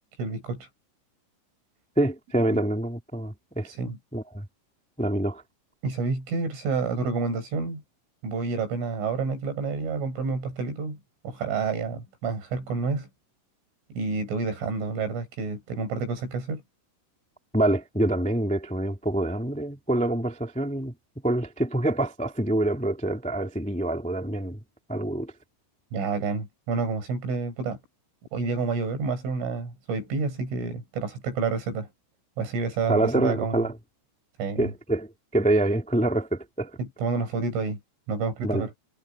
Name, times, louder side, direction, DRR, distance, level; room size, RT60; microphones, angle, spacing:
voice 1, 0.2-0.7 3.7-4.0 5.8-7.8 8.2-11.0 11.2-13.1 13.9-16.6 25.9-27.8 28.3-31.9 32.4-33.6 34.4-34.7 36.8-37.8 38.1-38.7, right 4 dB, 85° right, 9.3 m, -29 dB
voice 2, 1.9-3.7 4.1-4.4 5.0-5.4 17.5-20.9 21.2-24.6 24.9-25.3 32.9-33.7 34.6-36.8 38.4-38.7, right 1 dB, 5° left, 0.5 m, -26 dB
omnidirectional pair, 5.5 m